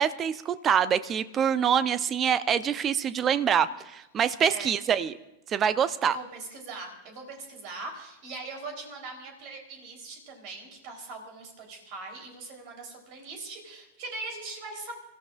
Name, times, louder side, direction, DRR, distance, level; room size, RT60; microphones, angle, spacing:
voice 1, 0.0-5.1 5.5-6.2, right 8 dB, 30° right, 15 dB, 0.6 m, -25 dB
voice 2, 6.0-14.9, right 3 dB, 45° right, 3 dB, 3.6 m, -41 dB
29.0 x 14.5 x 2.5 m, 0.93 s
figure-of-eight pair, 90°, 0 cm